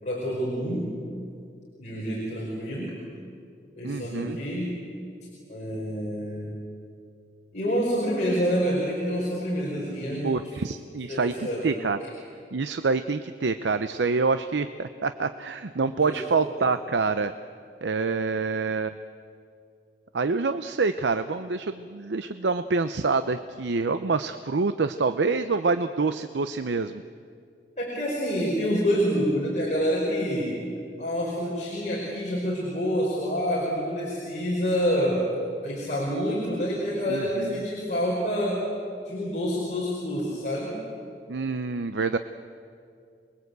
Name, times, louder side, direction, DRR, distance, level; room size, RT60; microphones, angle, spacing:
voice 1, 0.0-0.9 1.8-2.9 3.8-4.7 5.5-6.5 7.5-10.3 11.1-11.7 15.8-16.7 27.8-30.5 31.0-35.3 35.6-38.6 39.1-40.7, equal, 40° left, -5 dB, 5.3 m, -27 dB
voice 2, 3.8-4.4 10.2-12.0 12.5-17.3 17.8-18.9 20.1-27.0 37.1-37.7 41.3-42.2, right 4 dB, 90° right, 10 dB, 0.7 m, -26 dB
27.5 x 21.0 x 8.1 m, 2.4 s
head